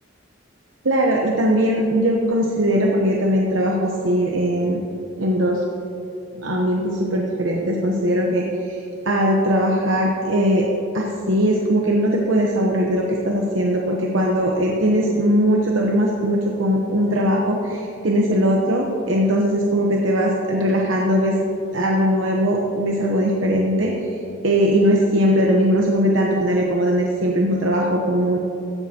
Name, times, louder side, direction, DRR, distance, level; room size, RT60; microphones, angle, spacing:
voice 1, 0.8-4.8 5.2-5.6 6.4-10.6 10.9-21.4 21.7-28.4, equal, 70° right, -1 dB, 1.0 m, -20 dB
15.0 x 10.5 x 2.9 m, 3.0 s
head